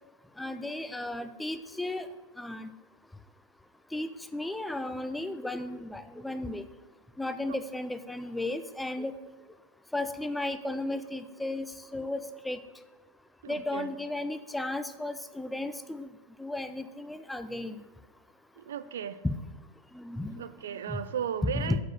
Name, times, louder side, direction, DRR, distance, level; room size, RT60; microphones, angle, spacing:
voice 1, 0.4-2.1 2.4-2.7 3.9-6.6 7.2-9.1 9.9-11.7 11.9-12.6 13.5-16.1 16.4-17.8 19.9-20.4 20.9-21.0 21.5-21.8, left 2 dB, 5° left, 10 dB, 0.5 m, -34 dB
voice 2, 13.4-13.9 18.6-19.2 20.4-21.8, right 8 dB, 60° right, 13 dB, 0.4 m, -35 dB
7.9 x 6.4 x 6.4 m, 1.1 s
figure-of-eight pair, 90°, 0 cm